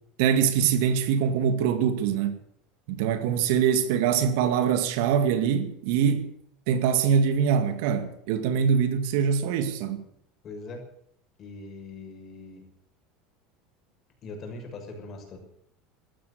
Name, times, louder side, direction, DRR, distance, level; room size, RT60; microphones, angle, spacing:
voice 1, 0.2-2.4 2.9-6.3 6.7-10.1, right 7 dB, 75° right, 2.2 m, -23 dB
voice 2, 10.4-10.8 11.4-12.6 14.2-15.4, left 3 dB, 40° left, 6.4 m, -41 dB
14.0 x 12.5 x 8.4 m
supercardioid pair, 105°, 0 cm